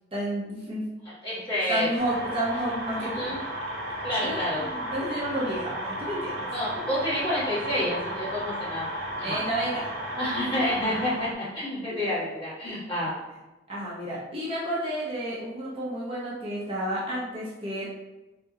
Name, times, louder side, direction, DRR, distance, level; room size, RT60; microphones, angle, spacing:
voice 1, 0.1-0.9 1.7-3.3 4.2-6.5 6.7-6.8 9.2-9.9 10.5-10.6 11.8-12.0 12.6-12.8 13.7-17.9, right 1 dB, 30° right, -7 dB, 0.6 m, -31 dB
voice 2, 1.2-1.9 3.1-3.4 4.0-4.7 6.5-8.9 9.2-9.4 10.1-13.1, left 1 dB, 25° left, -10 dB, 1.4 m, -29 dB
sound 1, 2.0-11.3, right 1 dB, 85° right, 0.7 m, -34 dB
3.6 x 2.1 x 2.7 m, 1.0 s
head